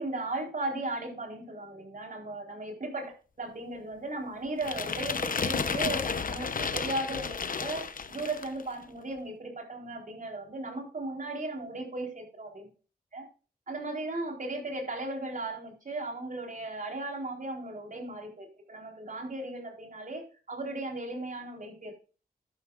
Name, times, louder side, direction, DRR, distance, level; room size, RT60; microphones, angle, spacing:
voice 1, 0.0-3.1 3.4-7.8 8.1-12.7 13.1-13.3 13.7-21.9, right 2 dB, 55° right, 1 dB, 4.3 m, -36 dB
sound 1, 4.6-8.6, left 5 dB, 60° left, 0.9 m, -32 dB
12.0 x 11.0 x 2.6 m, 0.36 s
cardioid pair, 65°, 16 cm